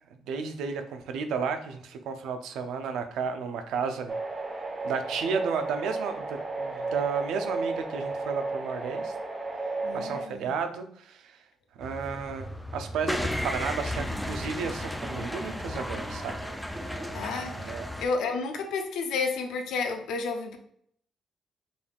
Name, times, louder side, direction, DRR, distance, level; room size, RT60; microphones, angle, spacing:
voice 1, 0.3-4.1 4.8-9.1 9.9-11.4 11.8-16.4 17.6-17.9, right 6 dB, 85° right, 7 dB, 0.5 m, -33 dB
sound 1, 4.1-10.2, right 3 dB, 35° right, 1.0 m, -33 dB
voice 2, 9.8-10.5 17.1-20.6, left 4 dB, 85° left, 5 dB, 0.7 m, -31 dB
sound 2, 11.8-18.1, equal, ahead, 0.4 m, -34 dB
5.2 x 3.4 x 2.4 m, 0.65 s
cardioid pair, 90°, 0 cm